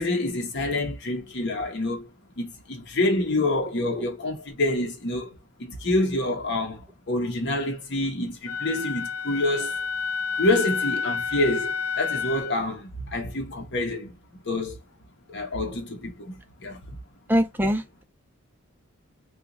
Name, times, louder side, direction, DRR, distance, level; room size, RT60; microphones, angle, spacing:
voice 1, 0.0-2.1 2.4-5.3 5.6-9.8 10.4-14.1 14.4-14.8 15.3-16.4 16.6-16.8, left 2 dB, 50° left, 0.9 m, -27 dB
Wind instrument woodwind instrument, 8.5-12.6, left 5 dB, 80° left, 0.9 m, -29 dB
voice 2, 17.3-18.0, equal, 10° right, 0.5 m, -23 dB
2.9 x 2.4 x 3.8 m
head